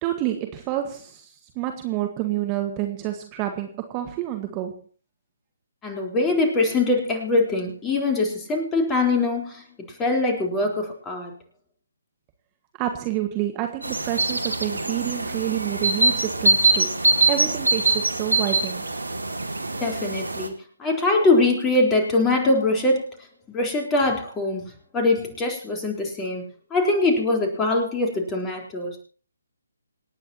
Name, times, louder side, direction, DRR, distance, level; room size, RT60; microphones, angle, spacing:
voice 1, 0.0-1.3 1.5-4.8 12.8-18.8, right 13 dB, 20° right, 5 dB, 1.6 m, -28 dB
voice 2, 5.8-9.6 10.0-11.3 19.8-20.5 20.8-23.1 23.5-26.4 26.7-29.0, left 2 dB, 15° left, 1 dB, 4.1 m, -22 dB
sound 1, 13.8-20.5, right 2 dB, 80° right, 2.3 m, -23 dB
27.5 x 9.6 x 3.0 m, 0.38 s
figure-of-eight pair, 145°, 0 cm